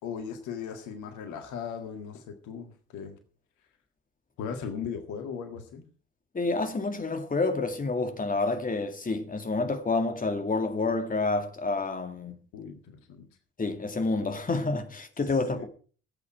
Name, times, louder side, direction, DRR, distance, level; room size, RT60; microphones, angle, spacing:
voice 1, 0.0-3.2 4.4-5.9 12.5-13.3 15.5-15.6, left 7 dB, 60° left, 1.9 m, -38 dB
voice 2, 6.3-12.4 13.6-15.6, left 3 dB, 25° left, 2.2 m, -28 dB
17.0 x 8.6 x 4.8 m
figure-of-eight pair, 45°, 34 cm